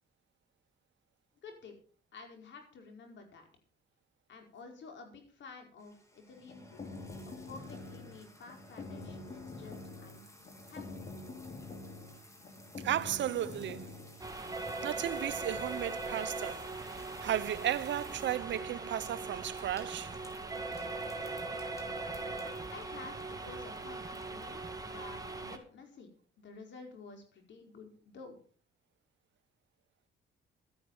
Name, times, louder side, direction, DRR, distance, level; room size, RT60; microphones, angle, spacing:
voice 1, 1.4-1.8 2.1-3.5 4.3-6.8 7.2-10.3 10.7-11.0 22.7-26.1 26.4-28.4, left 4 dB, 65° left, 4.8 m, -51 dB
sound 1, 5.8-24.6, left 1 dB, 15° left, 3.2 m, -59 dB
sound 2, 6.3-14.2, left 3 dB, 40° left, 3.4 m, -46 dB
voice 2, 12.8-14.1 14.8-20.2, right 11 dB, 65° right, 0.9 m, -35 dB
sound 3, 14.2-25.6, right 3 dB, 15° right, 2.3 m, -40 dB
13.0 x 11.0 x 5.4 m
cardioid pair, 90°, 20 cm